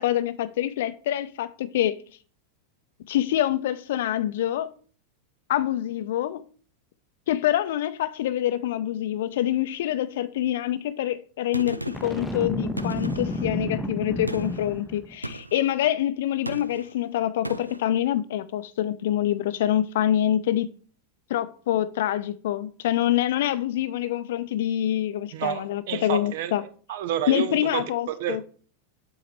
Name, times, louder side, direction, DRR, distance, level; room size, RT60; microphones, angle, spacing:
voice 1, 0.0-2.0 3.1-4.7 5.5-6.4 7.3-20.7 21.3-26.6 27.3-28.4, left 12 dB, 55° left, 0.5 m, -26 dB
Gunshot gunfire, 11.5-12.2 12.8-13.5 14.3-14.7 15.2-15.7 16.5-16.9 17.4-17.9, right 1 dB, 85° right, 0.3 m, -36 dB
Boom, 11.9-15.1, left 1 dB, ahead, 0.6 m, -31 dB
voice 2, 25.3-26.6 26.9-27.9 28.2-28.4, right 11 dB, 50° right, 0.6 m, -29 dB
7.7 x 2.9 x 4.4 m
figure-of-eight pair, 90°, 0 cm